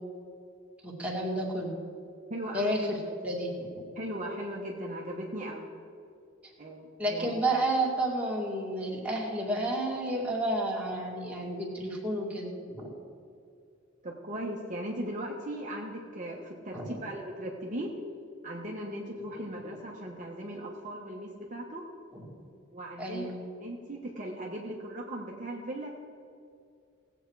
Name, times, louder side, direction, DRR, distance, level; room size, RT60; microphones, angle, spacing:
voice 1, 0.8-1.7 2.5-3.0 3.2-3.5 3.8-3.9 7.0-12.9 16.7-17.0 22.1-22.2 23.0-23.4, right 1 dB, 5° right, -4 dB, 2.2 m, -31 dB
voice 2, 2.3-2.8 3.0-3.3 3.9-5.7 6.6-7.5 14.0-17.9 18.4-21.8 22.7-25.9, right 1 dB, 40° right, -2 dB, 1.2 m, -38 dB
18.5 x 8.1 x 4.8 m, 2.4 s
head